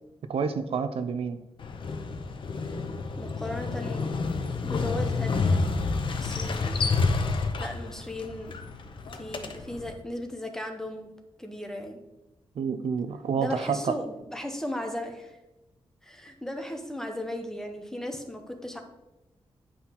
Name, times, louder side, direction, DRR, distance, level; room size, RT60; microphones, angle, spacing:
voice 1, 0.3-1.4 12.6-13.9, right 6 dB, 70° right, 10 dB, 0.5 m, -28 dB
Motorcycle, 1.6-9.9, left 4 dB, 55° left, 0.7 m, -29 dB
voice 2, 3.2-4.2 4.6-5.8 6.1-6.8 7.6-8.6 9.1-12.0 13.3-15.4 16.0-18.8, left 1 dB, 5° left, 4 dB, 0.7 m, -36 dB
9.6 x 5.6 x 2.9 m, 0.98 s
wide cardioid pair, 180°, 10 cm